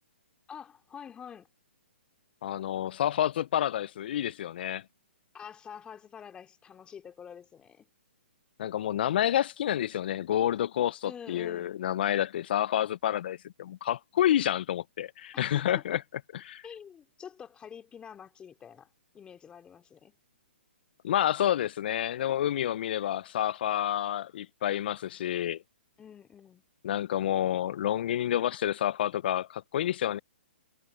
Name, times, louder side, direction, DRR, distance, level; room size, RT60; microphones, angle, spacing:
voice 1, 0.5-1.5 5.3-7.9 11.0-11.8 15.5-15.8 16.6-18.9 19.1-20.2 26.0-26.6, left 8 dB, 15° left, 3.5 m, -47 dB
voice 2, 2.4-4.8 8.6-16.0 16.4-16.6 21.0-25.6 26.8-30.2, left 11 dB, 55° left, 0.6 m, -29 dB
hypercardioid pair, 135°, 6 cm